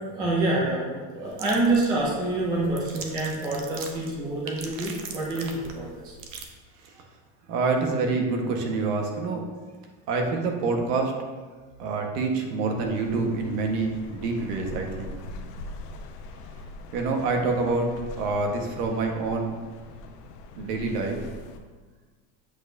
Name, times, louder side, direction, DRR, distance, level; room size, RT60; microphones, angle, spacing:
voice 1, 0.1-6.1, right 2 dB, 10° right, -4 dB, 0.3 m, -27 dB
sound 1, 1.2-6.4, right 5 dB, 55° right, 0.9 m, -41 dB
voice 2, 7.5-9.4 10.1-11.2 11.8-15.1 16.9-19.6 20.6-21.3, right 3 dB, 85° right, 2 dB, 1.4 m, -27 dB
sound 2, 12.8-21.6, left 3 dB, 90° left, 0.9 m, -42 dB
7.9 x 6.4 x 2.6 m, 1.4 s
cardioid pair, 170°, 45 cm